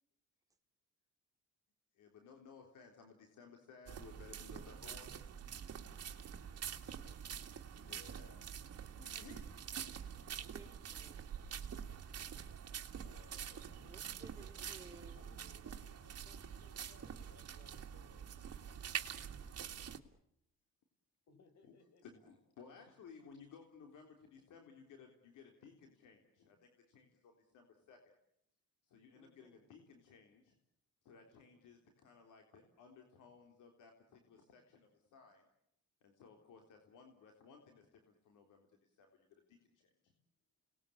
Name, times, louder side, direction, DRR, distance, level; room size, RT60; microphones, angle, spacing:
voice 1, 1.9-5.3 7.7-8.5 9.0-9.5 22.0-28.0 28.8-30.6 31.0-35.5 36.0-40.1, left 5 dB, 80° left, 4 dB, 3.7 m, -59 dB
sound 1, 3.9-20.0, right 8 dB, 55° right, 2.3 m, -46 dB
voice 2, 10.4-11.2 11.5-11.6 13.9-15.3 29.1-29.7, right 3 dB, 10° right, 2 dB, 4.4 m, -59 dB
voice 3, 13.0-13.9 15.1-18.5 21.3-22.0, left 4 dB, 65° left, 9 dB, 5.7 m, -66 dB
29.0 x 20.0 x 8.6 m, 0.78 s
cardioid pair, 90°, 30 cm